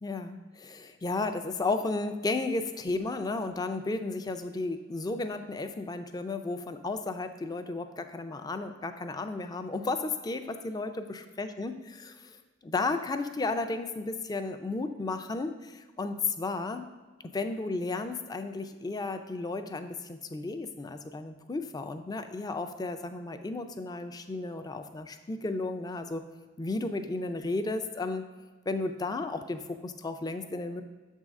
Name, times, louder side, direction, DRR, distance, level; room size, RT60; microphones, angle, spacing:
voice 1, 0.0-10.9 11.4-12.3 12.6-16.9 17.2-26.2 26.6-28.3 28.7-30.8, left 3 dB, 20° left, 8 dB, 0.4 m, -33 dB
7.4 x 3.6 x 5.2 m, 1.3 s
head